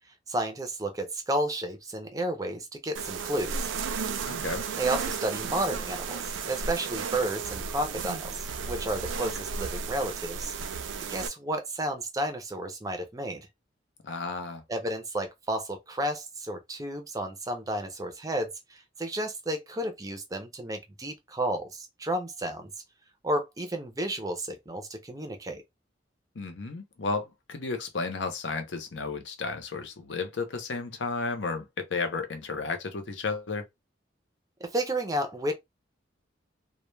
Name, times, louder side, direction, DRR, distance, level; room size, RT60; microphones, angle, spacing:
voice 1, 0.3-3.7 4.8-10.5 11.1-13.5 14.7-22.7 23.2-25.6 34.6-35.5, right 1 dB, 20° right, 0.5 m, -32 dB
sound 1, 2.9-11.3, right 5 dB, 85° right, 0.4 m, -34 dB
voice 2, 4.3-4.6 14.0-14.6 26.4-33.6, left 4 dB, 70° left, 0.6 m, -33 dB
2.1 x 2.1 x 3.1 m
head